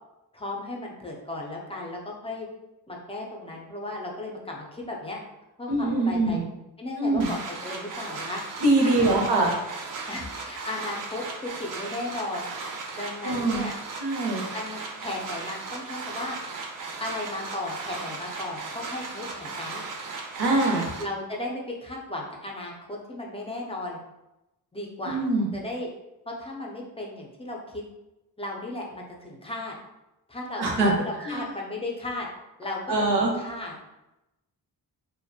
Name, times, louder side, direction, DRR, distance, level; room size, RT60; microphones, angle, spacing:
voice 1, 0.3-2.5 2.9-5.2 5.6-6.4 6.8-8.4 8.8-9.4 10.1-12.5 12.9-13.7 14.5-16.4 17.0-19.8 21.0-24.0 24.7-25.3 25.5-25.9 26.3-27.8 28.4-29.8 30.3-32.3 32.6-32.8 33.1-34.0, left 2 dB, 15° left, -1 dB, 0.4 m, -35 dB
voice 2, 5.7-6.4 7.0-7.3 8.6-9.5 13.2-13.7 14.0-14.4 20.4-20.9 25.1-25.5 30.6-30.9 31.2-31.4 32.9-33.3, right 2 dB, 90° right, 0 dB, 0.7 m, -23 dB
sound 1, 7.2-21.0, right 4 dB, 55° right, 0.4 m, -37 dB
2.4 x 2.1 x 2.6 m, 0.95 s
wide cardioid pair, 125°, 38 cm